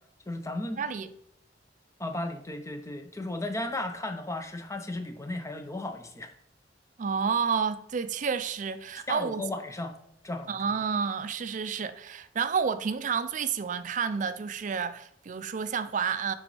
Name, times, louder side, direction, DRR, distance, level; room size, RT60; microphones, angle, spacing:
voice 1, 0.3-0.8 2.0-6.3 9.1-9.9 10.2-10.5, left 2 dB, 15° left, 0.6 m, -35 dB
voice 2, 0.8-1.1 7.0-9.4 10.5-16.3, right 6 dB, 45° right, 0.4 m, -30 dB
9.4 x 3.8 x 3.1 m
head